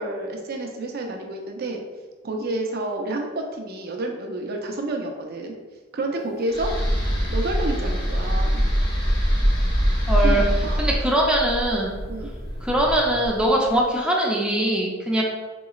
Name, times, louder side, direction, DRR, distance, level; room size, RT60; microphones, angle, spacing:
voice 1, 0.0-1.8 2.2-5.5 5.9-6.7 7.3-8.6 10.1-10.9 12.1-12.3, right 2 dB, 50° right, 2 dB, 0.5 m, -29 dB
sound 1, 6.5-13.7, equal, 20° left, 1.0 m, -23 dB
voice 2, 10.1-10.4 10.8-12.0 12.6-15.2, right 1 dB, 5° right, -2 dB, 0.5 m, -22 dB
4.7 x 3.0 x 2.3 m, 1.3 s
head